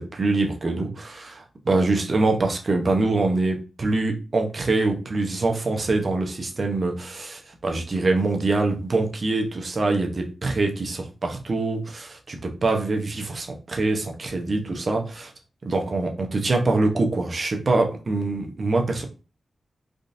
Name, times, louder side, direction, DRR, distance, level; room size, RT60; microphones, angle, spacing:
voice 1, 0.0-15.3 15.6-19.0, right 3 dB, 55° right, 3 dB, 0.8 m, -24 dB
3.6 x 2.5 x 2.6 m, 0.33 s
cardioid pair, 40°, 0 cm